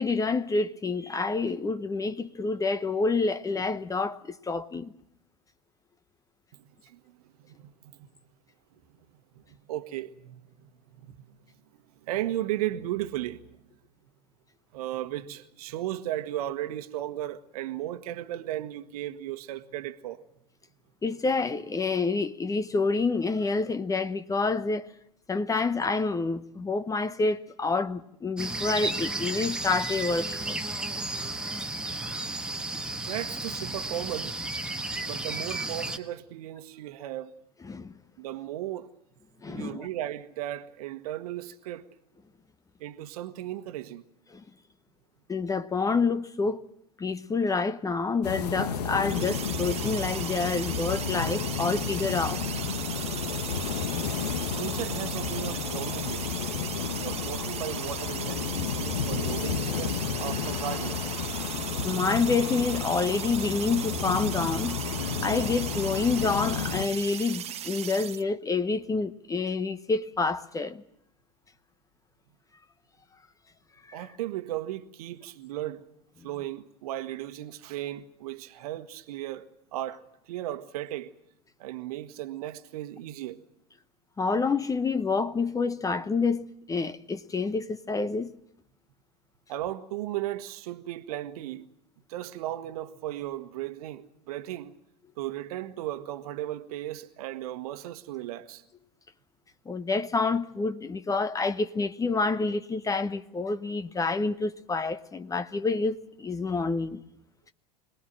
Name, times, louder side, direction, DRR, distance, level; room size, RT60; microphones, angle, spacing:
voice 1, 0.0-4.9 21.0-24.9 25.3-30.6 37.7-37.9 39.4-39.9 44.3-44.4 45.3-46.6 47.0-52.5 61.8-64.8 65.2-70.8 73.9-74.1 84.2-88.3 99.7-107.0, left 4 dB, 15° left, 0.9 m, -28 dB
voice 2, 6.8-8.1 9.3-10.7 11.0-11.3 12.0-13.5 14.7-20.2 33.0-34.4 35.0-37.3 38.2-38.9 39.5-41.9 42.8-44.0 54.5-56.3 57.0-61.0 73.9-75.8 76.2-81.1 81.6-83.4 89.5-91.7 92.1-94.7 95.2-98.6, right 13 dB, 60° right, 1.4 m, -36 dB
sound 1, 28.4-36.0, right 2 dB, 5° right, 1.5 m, -33 dB
sound 2, 48.2-66.9, left 7 dB, 70° left, 1.6 m, -32 dB
sound 3, 49.0-68.2, right 11 dB, 30° right, 0.9 m, -37 dB
26.0 x 19.0 x 7.6 m
figure-of-eight pair, 85°, 21 cm